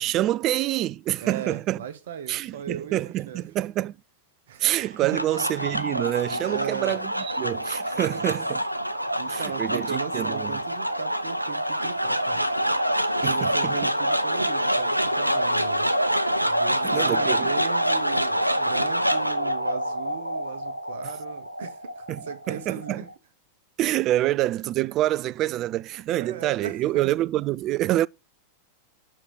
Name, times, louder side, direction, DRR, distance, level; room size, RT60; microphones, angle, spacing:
voice 1, 0.0-1.8 2.3-3.9 4.6-8.6 9.3-10.5 13.2-13.8 16.8-17.5 22.1-23.0 23.8-28.1, right 14 dB, 35° right, 0.3 m, -26 dB
voice 2, 1.2-3.4 4.5-4.6 5.0-5.4 6.4-7.1 7.9-8.3 9.1-12.4 13.2-15.9 16.4-23.1 25.7-27.1, right 8 dB, 60° right, 1.2 m, -38 dB
sound 1, 4.8-23.1, equal, 90° right, 0.6 m, -26 dB
6.6 x 4.6 x 6.1 m
figure-of-eight pair, 90°, 0 cm